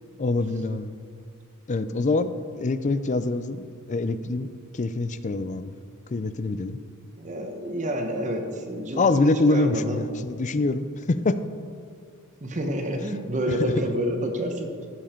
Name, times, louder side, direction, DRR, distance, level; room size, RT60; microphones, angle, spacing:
voice 1, 0.2-0.9 1.7-4.5 4.7-5.7 6.1-6.8 9.0-11.4 13.5-13.9, left 3 dB, 35° left, 13 dB, 0.4 m, -25 dB
voice 2, 7.2-10.0 12.4-14.7, right 1 dB, 35° right, 4 dB, 1.0 m, -29 dB
15.5 x 7.3 x 4.4 m, 2.2 s
head